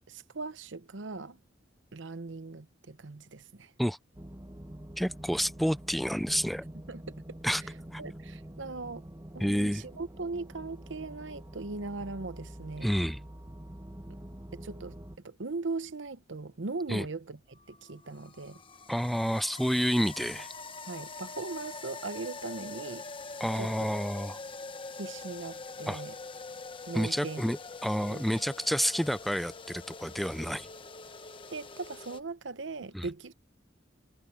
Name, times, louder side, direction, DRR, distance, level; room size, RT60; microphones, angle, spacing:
voice 1, 0.0-1.4 1.9-3.7 6.9-7.0 8.0-9.1 9.3-12.9 14.5-15.0 15.2-18.6 20.9-23.1 23.6-23.9 24.9-26.1 26.9-27.4 28.0-28.2 31.5-33.3, right 3 dB, 75° right, 0.9 m, -39 dB
sound 1, 4.1-15.2, right 1 dB, 20° right, 1.1 m, -46 dB
voice 2, 5.0-6.6 7.4-7.6 7.9-8.0 9.4-9.8 12.8-13.2 16.9-17.1 18.9-20.5 23.4-24.4 25.9-26.0 26.9-30.7 32.9-33.1, equal, ahead, 0.3 m, -29 dB
sound 2, 17.5-32.2, left 4 dB, 30° left, 1.0 m, -44 dB
head